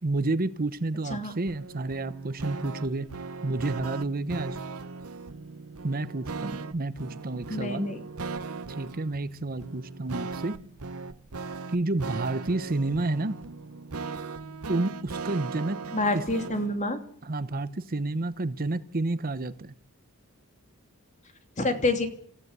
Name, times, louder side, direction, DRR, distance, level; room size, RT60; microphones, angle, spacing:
voice 1, 0.0-3.1 3.4-4.6 5.8-7.9 8.7-10.6 11.7-13.4 14.7-15.8 16.1-16.2 17.2-19.7, right 2 dB, 40° right, 13 dB, 0.9 m, -30 dB
sound 1, 1.5-16.8, right 4 dB, 85° right, 1.0 m, -38 dB
voice 2, 7.5-8.0 15.9-17.0 21.6-22.1, left 2 dB, 35° left, 7 dB, 2.9 m, -27 dB
27.5 x 15.0 x 8.1 m, 0.63 s
head